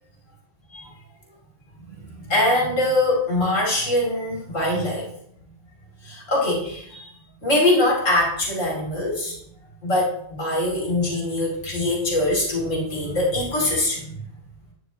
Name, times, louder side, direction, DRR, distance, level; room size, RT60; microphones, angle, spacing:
voice 1, 2.0-5.1 6.0-7.1 7.4-9.4 9.8-14.1, left 1 dB, 85° left, -3 dB, 3.5 m, -23 dB
11.5 x 9.5 x 3.1 m, 0.69 s
omnidirectional pair, 1.3 m